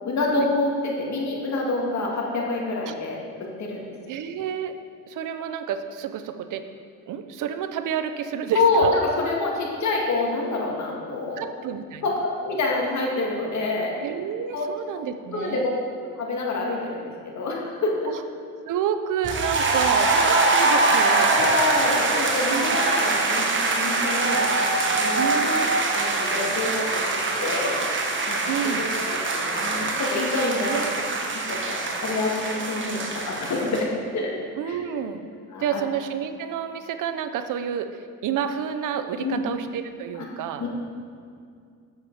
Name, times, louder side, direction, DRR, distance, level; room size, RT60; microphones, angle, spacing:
voice 1, 0.0-3.8 8.5-11.4 12.0-13.9 14.5-14.7 15.3-15.7 16.2-18.1 20.6-20.7 21.3-27.8 28.3-28.4 28.8-30.8 31.3-34.3 34.6-34.8 35.5-35.8 39.2-39.4 40.2-40.3 40.6-40.7, left 2 dB, 55° left, -2 dB, 2.0 m, -27 dB
voice 2, 4.1-4.8 5.1-6.6 7.1-8.9 11.4-12.0 14.0-15.7 18.1-18.2 18.6-21.3 22.5-22.7 25.2-25.8 28.5-28.9 30.7-30.9 34.6-35.3 35.6-40.6, right 8 dB, 65° right, 9 dB, 0.7 m, -29 dB
sound 1, 19.2-33.8, right 3 dB, 35° right, 1.1 m, -23 dB
8.1 x 7.2 x 4.7 m, 2.3 s
cardioid pair, 95°, 33 cm